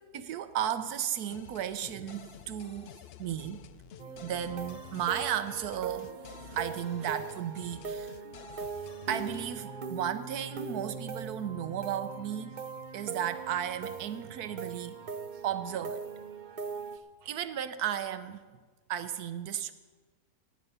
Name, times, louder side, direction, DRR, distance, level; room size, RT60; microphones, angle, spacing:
voice 1, 0.1-2.9 3.2-3.7 4.2-6.2 6.5-8.1 8.6-12.6 12.9-14.9 15.4-16.1 17.2-18.4 18.9-19.7, right 9 dB, 75° right, 11 dB, 1.2 m, -34 dB
sound 1, 1.3-9.6, left 10 dB, 85° left, 0.5 m, -50 dB
sound 2, 4.0-17.0, right 5 dB, 45° right, 0.6 m, -41 dB
17.5 x 8.9 x 5.6 m, 1.4 s
omnidirectional pair, 1.7 m